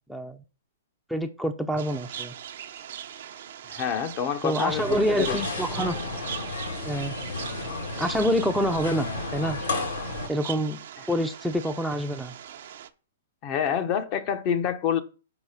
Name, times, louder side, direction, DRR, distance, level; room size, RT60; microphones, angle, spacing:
voice 1, 0.1-0.4 1.1-2.3 4.4-6.0 6.8-7.1 8.0-9.6 10.3-10.8 11.1-12.3, equal, ahead, 0.6 m, -27 dB
sound 1, 1.8-12.9, right 9 dB, 60° right, 0.7 m, -40 dB
voice 2, 3.7-5.4 6.0-6.2 13.4-15.0, left 8 dB, 40° left, 0.9 m, -27 dB
sound 2, 4.7-10.3, left 3 dB, 75° left, 2.7 m, -33 dB
6.0 x 4.7 x 5.7 m
hypercardioid pair, 125°, 0 cm